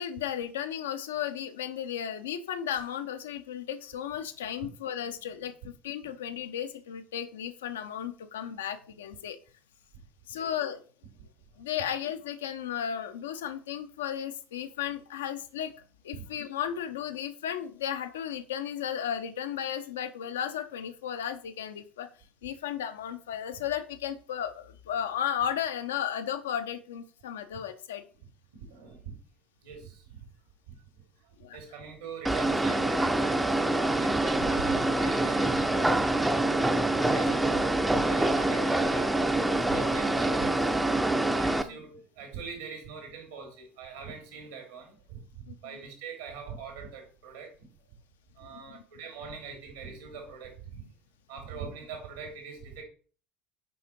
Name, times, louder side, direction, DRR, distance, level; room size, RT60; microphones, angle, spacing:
voice 1, 0.0-5.5 5.8-9.4 10.3-10.8 11.6-22.1 22.4-28.0 31.4-31.6 45.5-45.8 48.7-48.8, left 9 dB, 70° left, 9 dB, 0.7 m, -34 dB
voice 2, 28.7-29.2 29.6-30.2 30.7-30.8 31.5-33.6 33.9-36.1 37.0-40.7 41.4-45.2 45.6-47.5 48.4-50.8 51.3-52.8, right 6 dB, 70° right, 3 dB, 3.0 m, -42 dB
sound 1, 32.2-41.6, right 2 dB, 10° right, 0.6 m, -26 dB
6.2 x 5.0 x 4.5 m, 0.40 s
figure-of-eight pair, 65°, 0 cm